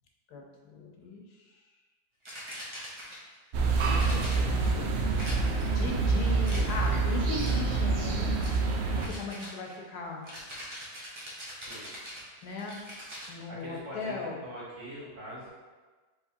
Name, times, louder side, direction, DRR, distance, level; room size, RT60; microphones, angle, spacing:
voice 1, 0.3-1.2 3.8-4.9 5.7-8.4 8.9-10.3 12.4-12.8 13.3-14.4, left 3 dB, 80° left, 0 dB, 1.2 m, -38 dB
sound 1, 2.2-3.4 4.0-4.7 5.2-5.8 6.4-7.0 7.4-7.8 8.4-8.7 9.0-13.3, equal, 30° right, 0.6 m, -43 dB
sound 2, 3.5-9.1, right 3 dB, 70° right, 0.6 m, -27 dB
voice 2, 11.6-11.9 13.5-15.5, right 1 dB, 50° right, -7 dB, 1.5 m, -43 dB
4.8 x 3.6 x 2.7 m, 1.3 s
omnidirectional pair, 1.7 m